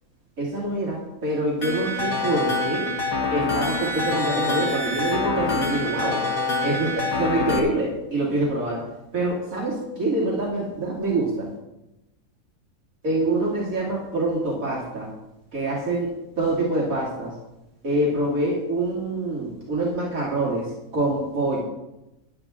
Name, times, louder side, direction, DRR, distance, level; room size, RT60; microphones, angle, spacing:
voice 1, 0.4-2.9 3.3-6.2 6.6-8.8 9.1-11.5 13.0-15.1 15.5-17.3 17.8-20.7 20.9-21.6, right 2 dB, 70° right, -4 dB, 3.0 m, -25 dB
sound 1, 1.6-7.6, left 3 dB, 75° left, 2.4 m, -26 dB
14.5 x 11.0 x 3.7 m, 0.92 s
omnidirectional pair, 1.5 m